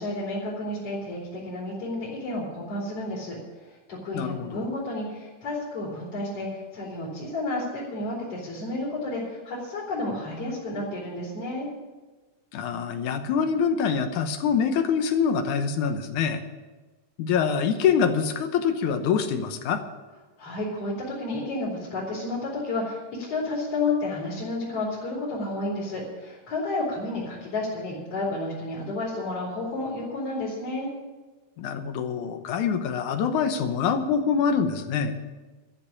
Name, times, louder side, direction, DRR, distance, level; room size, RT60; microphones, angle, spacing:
voice 1, 0.0-3.4 3.6-11.7 20.4-30.9, left 2 dB, 50° left, -6 dB, 4.3 m, -31 dB
voice 2, 4.1-4.6 12.5-16.4 17.2-19.8 31.6-35.2, left 6 dB, 75° left, 8 dB, 2.3 m, -25 dB
13.0 x 7.3 x 9.8 m, 1.2 s
omnidirectional pair, 3.6 m